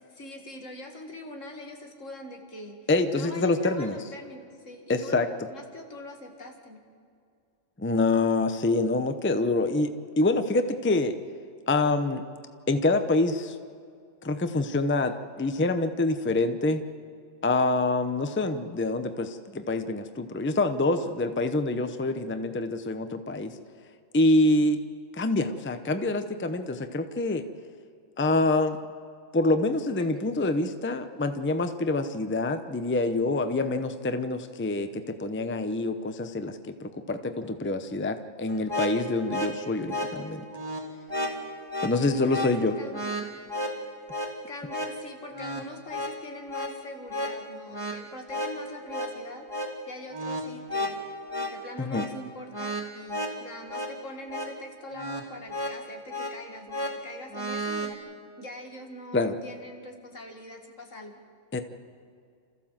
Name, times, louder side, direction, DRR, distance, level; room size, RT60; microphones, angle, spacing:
voice 1, 0.0-2.9 3.1-6.8 30.0-30.1 42.1-42.4 42.8-43.4 44.5-49.5 49.9-51.0 51.5-58.0 58.4-61.1, left 1 dB, 75° left, 3 dB, 2.4 m, -43 dB
voice 2, 2.9-4.0 4.9-5.3 7.8-11.2 11.7-12.2 12.7-13.6 14.2-16.8 17.4-23.5 24.1-24.8 25.1-27.5 28.2-28.8 29.3-40.4 41.8-42.8 51.8-52.1 59.1-59.3 61.5-61.6, left 2 dB, 10° left, 9 dB, 0.6 m, -26 dB
sound 1, 38.5-57.9, equal, 15° right, 2.1 m, -34 dB
28.0 x 14.5 x 7.5 m, 2.3 s
omnidirectional pair, 1.3 m